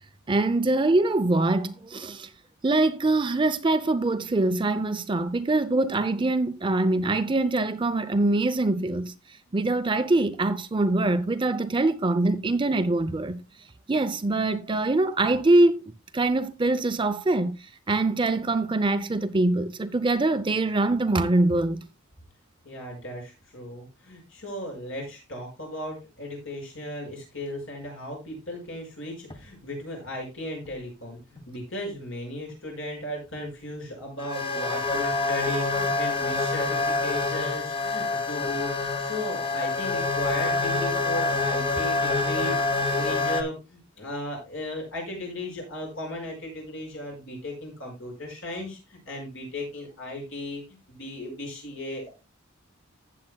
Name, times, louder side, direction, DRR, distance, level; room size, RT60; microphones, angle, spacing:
voice 1, 0.3-2.3 2.6-9.1 9.5-13.4 13.9-15.8 16.1-17.6 17.9-21.8, right 2 dB, 25° right, 0.5 m, -23 dB
voice 2, 22.6-50.6 50.9-52.1, left 1 dB, 70° left, 5.6 m, -36 dB
sound 1, 29.3-29.4 30.7-30.8 31.4-31.5 32.5-32.6 34.2-43.4, left 3 dB, 25° left, 1.1 m, -26 dB
15.5 x 7.5 x 2.2 m
head